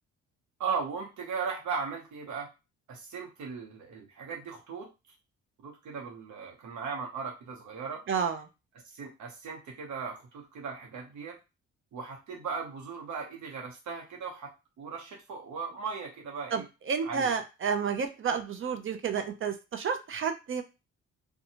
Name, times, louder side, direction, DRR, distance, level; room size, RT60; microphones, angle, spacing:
voice 1, 0.6-2.5 2.9-4.9 5.6-8.0 8.9-11.4 11.9-14.5 14.8-16.7 17.0-17.3, right 5 dB, 70° right, 0 dB, 0.9 m, -37 dB
voice 2, 8.1-8.4 16.5-20.6, right 6 dB, 45° right, 7 dB, 0.5 m, -30 dB
2.6 x 2.3 x 2.8 m, 0.27 s
cardioid pair, 90°, 30 cm